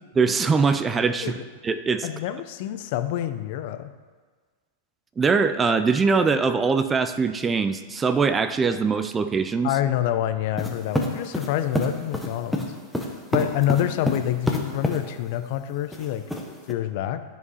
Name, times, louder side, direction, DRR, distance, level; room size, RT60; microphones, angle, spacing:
voice 1, 0.2-1.4 1.6-2.1 5.2-9.7, right 5 dB, 15° right, 11 dB, 0.4 m, -22 dB
voice 2, 2.0-3.9 9.6-12.7 13.3-16.3 16.7-17.2, left 12 dB, 55° left, 11 dB, 0.6 m, -27 dB
sound 1, 10.6-15.0 15.9-16.7, equal, ahead, 0.9 m, -27 dB
12.5 x 5.1 x 4.2 m, 1.4 s
hypercardioid pair, 130°, 0 cm